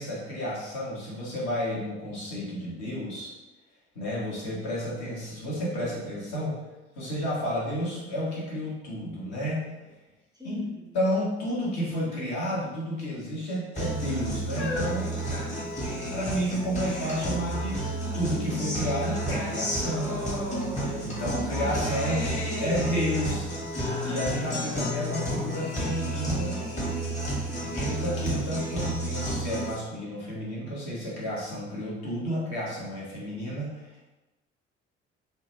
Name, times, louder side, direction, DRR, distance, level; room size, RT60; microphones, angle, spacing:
voice 1, 0.0-3.3 3.9-6.6 6.9-9.6 10.4-10.6 10.9-15.2 16.1-20.2 21.0-22.2 22.6-23.5 24.0-26.6 27.6-34.1, equal, 55° left, -6 dB, 1.1 m, -31 dB
sound 1, 7.0-7.1 7.5-9.0 9.6-10.1 11.0-11.3 11.6-11.8 12.6-13.3 14.0-16.0 16.8-16.9, left 2 dB, 85° left, 0.5 m, -41 dB
voice 2, 10.3-11.0 15.4-15.9 21.2-23.2, left 3 dB, 10° right, -3 dB, 0.4 m, -42 dB
Guitar, 13.7-29.7, right 1 dB, 20° left, 1.1 m, -31 dB
2.7 x 2.1 x 3.0 m, 1.0 s
figure-of-eight pair, 50°, 33 cm